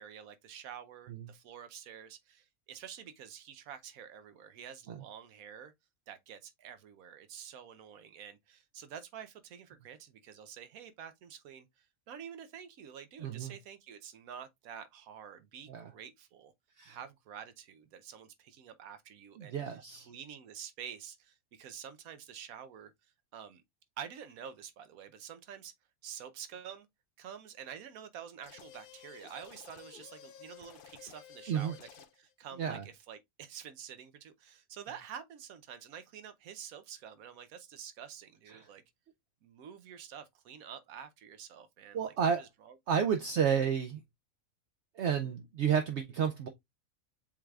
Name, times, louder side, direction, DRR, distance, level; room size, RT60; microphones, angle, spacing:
voice 1, 0.0-5.7 6.1-16.5 16.9-22.9 23.3-23.6 24.0-25.7 26.0-26.9 27.2-31.9 32.2-38.8 39.4-42.7, right 8 dB, 85° right, 1.1 m, -48 dB
voice 2, 13.2-13.5 15.7-15.9 16.8-17.0 19.4-20.1 31.5-31.8 32.6-32.8 38.5-38.7 41.9-42.4 42.9-44.0 45.0-46.5, right 7 dB, 65° right, 0.8 m, -31 dB
sound 1, 28.4-32.3, left 9 dB, 65° left, 0.5 m, -53 dB
7.0 x 3.3 x 2.3 m
omnidirectional pair, 1.4 m